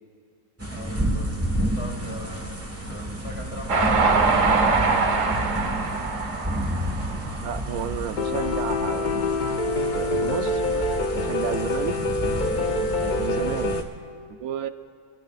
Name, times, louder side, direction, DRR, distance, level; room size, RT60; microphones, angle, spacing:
sound 1, 0.6-13.8, right 1 dB, 10° right, 1.3 m, -30 dB
voice 1, 0.7-6.0, left 1 dB, 20° left, -2 dB, 3.1 m, -41 dB
Train, 3.7-8.1, right 4 dB, 60° right, 1.4 m, -23 dB
voice 2, 7.4-9.4 9.9-11.9 13.0-13.8 14.3-14.7, right 9 dB, 80° right, 9 dB, 1.1 m, -32 dB
Piano, 8.2-13.8, left 2 dB, 45° left, 0.6 m, -26 dB
28.0 x 20.5 x 2.5 m, 2.4 s
omnidirectional pair, 1.5 m